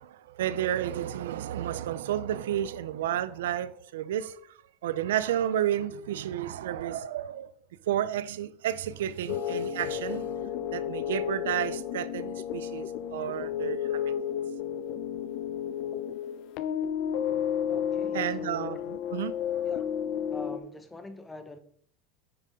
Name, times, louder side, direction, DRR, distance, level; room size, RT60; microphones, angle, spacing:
voice 1, 0.0-4.4 4.8-7.5 7.9-10.2 10.7-12.9 13.1-14.1 18.1-19.3, right 11 dB, 85° right, 0.5 m, -31 dB
sound 1, 9.3-20.6, left 9 dB, 60° left, 0.7 m, -32 dB
voice 2, 17.7-18.8 19.6-19.9 20.3-21.6, left 2 dB, 10° left, 1.0 m, -44 dB
9.8 x 5.3 x 3.7 m
supercardioid pair, 115°, 0 cm